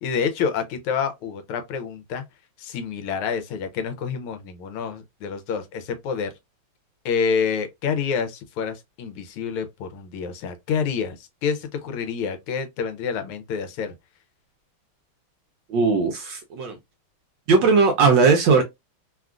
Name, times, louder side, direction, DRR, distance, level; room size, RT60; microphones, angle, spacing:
voice 1, 0.0-2.2 2.6-6.3 7.0-13.9, left 6 dB, 85° left, 1.5 m, -28 dB
voice 2, 15.7-16.8 17.5-18.6, right 4 dB, 75° right, 1.1 m, -18 dB
3.6 x 2.3 x 2.3 m
omnidirectional pair, 2.4 m